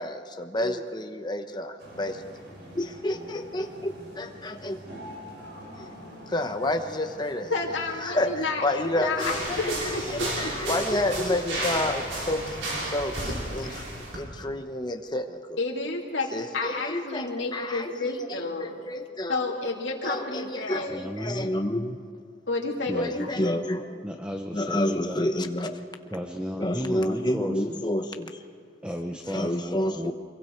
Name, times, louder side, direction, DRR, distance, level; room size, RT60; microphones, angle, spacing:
voice 1, 0.0-2.2 2.7-4.8 5.8-5.9 6.3-7.5 8.0-8.3 8.6-9.7 10.1-13.8 14.1-15.6 16.3-19.4 20.0-22.0 22.9-23.9 24.5-25.8 26.6-28.4 29.3-30.1, left 1 dB, 25° left, 6 dB, 1.1 m, -29 dB
sound 1, 1.8-10.6, equal, 60° right, 5.4 m, -45 dB
voice 2, 7.5-10.5 15.6-18.8 19.3-21.0 22.5-23.4, left 3 dB, 70° left, -2 dB, 2.6 m, -30 dB
sound 2, 9.2-14.2, right 1 dB, 90° right, 5.7 m, -32 dB
voice 3, 20.7-21.5 22.9-23.3 24.0-25.2 26.1-27.8 28.8-30.1, equal, 5° right, 4 dB, 0.8 m, -34 dB
25.5 x 23.0 x 4.6 m, 2.1 s
head